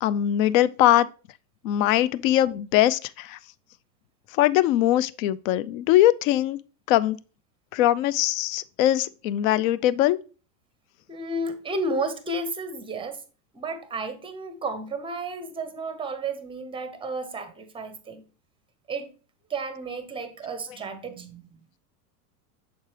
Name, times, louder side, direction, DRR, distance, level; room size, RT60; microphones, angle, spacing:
voice 1, 0.0-1.1 1.6-3.4 4.3-6.6 6.9-7.2 7.7-10.2, left 13 dB, 55° left, 0.5 m, -21 dB
voice 2, 11.1-13.2 13.5-18.2 18.9-19.1 19.5-21.4, right 2 dB, 10° right, 0.6 m, -32 dB
6.9 x 4.3 x 3.2 m
hypercardioid pair, 110°, 49 cm